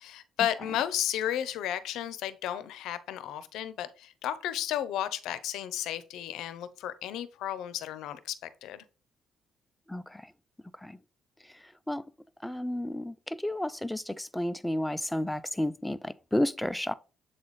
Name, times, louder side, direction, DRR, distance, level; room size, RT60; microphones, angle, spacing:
voice 1, 0.0-8.4 8.6-8.8, left 11 dB, 85° left, 0.6 m, -33 dB
voice 2, 9.9-10.3 10.8-11.0 11.5-12.0 12.4-16.9, left 1 dB, 5° left, 0.3 m, -32 dB
7.5 x 4.0 x 3.2 m
cardioid pair, 90°, 0 cm